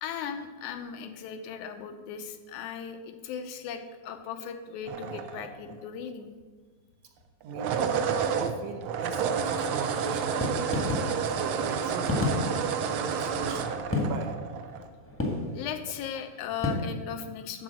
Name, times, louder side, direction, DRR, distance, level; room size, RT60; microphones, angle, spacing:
voice 1, 0.0-6.3 15.5-17.6, left 8 dB, 85° left, 6 dB, 2.3 m, -37 dB
sound 1, 4.9-5.9 7.4-14.9, right 6 dB, 90° right, 1.2 m, -30 dB
voice 2, 7.4-7.9 8.4-10.7 11.3-12.3 12.9-14.3, right 4 dB, 70° right, 5 dB, 1.9 m, -38 dB
sound 2, 10.4-16.7, left 2 dB, 10° left, 0.8 m, -32 dB
12.0 x 4.7 x 7.7 m, 1.4 s
omnidirectional pair, 3.4 m